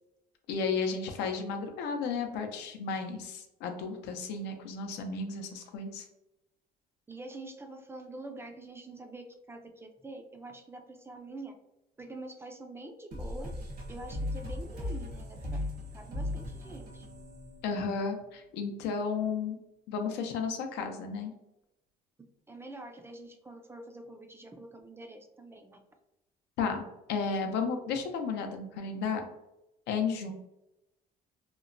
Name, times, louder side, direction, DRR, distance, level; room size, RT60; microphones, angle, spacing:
voice 1, 0.5-6.1 17.6-19.6 19.9-21.3 26.6-29.3 29.9-30.3, left 5 dB, 85° left, 4 dB, 0.5 m, -33 dB
voice 2, 7.1-11.6 12.0-13.5 13.9-15.4 15.9-17.1 22.5-25.8, right 2 dB, 15° right, 4 dB, 0.3 m, -45 dB
sound 1, 13.1-18.4, left 1 dB, 60° right, 1.0 m, -38 dB
2.9 x 2.1 x 2.5 m, 0.91 s
cardioid pair, 110°, 17 cm